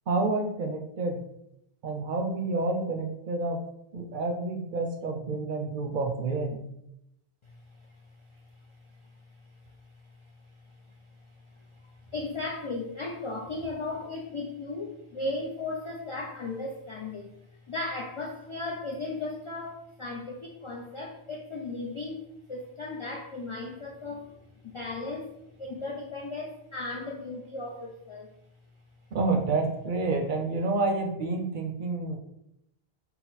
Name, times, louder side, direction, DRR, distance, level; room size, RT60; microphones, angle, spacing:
voice 1, 0.1-1.2 1.8-3.6 3.9-6.6 29.1-32.2, right 3 dB, 60° right, 3 dB, 0.6 m, -29 dB
voice 2, 7.4-28.3, left 2 dB, 55° left, -1 dB, 0.3 m, -37 dB
4.2 x 2.0 x 3.9 m, 0.81 s
omnidirectional pair, 1.1 m